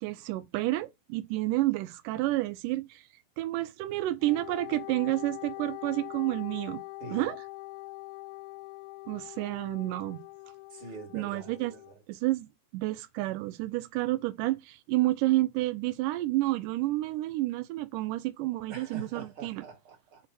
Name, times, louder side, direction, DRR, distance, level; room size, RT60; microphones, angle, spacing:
voice 1, 0.0-3.1 3.4-6.8 7.1-7.4 9.1-10.2 11.1-11.7 12.1-19.6, right 17 dB, 90° right, 1.8 m, -30 dB
Wind instrument woodwind instrument, 4.2-11.9, left 24 dB, 85° left, 2.4 m, -43 dB
voice 2, 10.7-12.0 18.7-20.2, right 4 dB, 40° right, 3.0 m, -45 dB
5.8 x 3.4 x 5.8 m
omnidirectional pair, 4.3 m